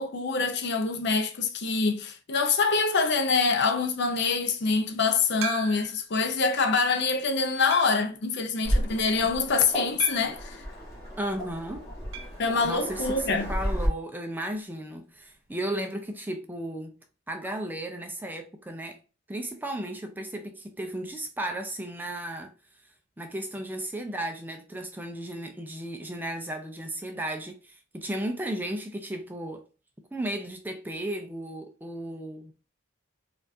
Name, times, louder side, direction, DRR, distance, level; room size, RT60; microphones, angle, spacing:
voice 1, 0.0-10.6 12.4-13.5, left 4 dB, 55° left, 0.6 m, -25 dB
sound 1, 5.4-6.1 6.7-6.8 7.7-8.1 10.0-10.5 12.1-12.4 12.7-12.8 13.0-13.1 15.1-15.2, right 6 dB, 65° right, 0.5 m, -36 dB
Waves surf, 8.6-13.9, equal, 15° left, 1.2 m, -33 dB
voice 2, 11.2-11.9 12.6-17.0 17.3-19.0 19.3-22.5 23.2-29.7 30.1-32.5, right 1 dB, 10° right, 0.4 m, -34 dB
4.3 x 2.4 x 2.6 m
head